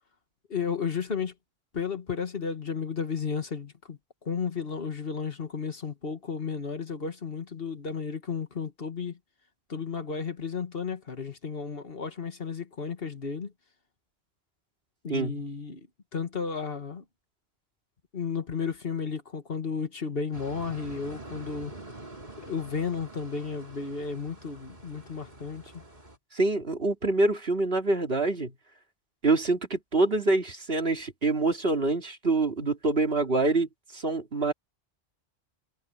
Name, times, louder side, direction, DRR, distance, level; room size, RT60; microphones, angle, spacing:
voice 1, 0.5-1.3 1.7-4.0 4.3-9.2 9.7-13.5 15.0-15.9 16.1-17.0 18.1-21.7 22.4-25.8, left 5 dB, 70° left, 1.9 m, -33 dB
voice 2, 15.1-15.4 26.3-28.5 29.2-34.5, right 2 dB, 70° right, 2.9 m, -26 dB
sound 1, 20.3-26.2, right 2 dB, 45° right, 4.2 m, -45 dB
omnidirectional pair, 1.0 m